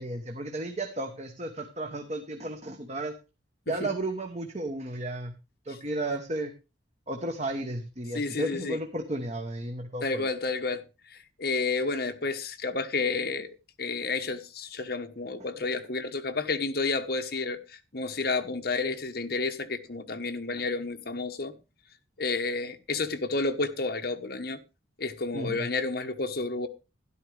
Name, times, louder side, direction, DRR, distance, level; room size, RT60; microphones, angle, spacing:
voice 1, 0.0-3.2 3.7-5.3 5.6-6.5 7.1-10.3 25.3-25.7, right 1 dB, 35° right, 1.0 m, -33 dB
voice 2, 8.1-8.8 10.0-10.8 11.4-13.5 13.8-21.5 22.2-24.6 25.0-26.7, left 3 dB, 55° left, 1.2 m, -30 dB
12.5 x 11.0 x 3.4 m
head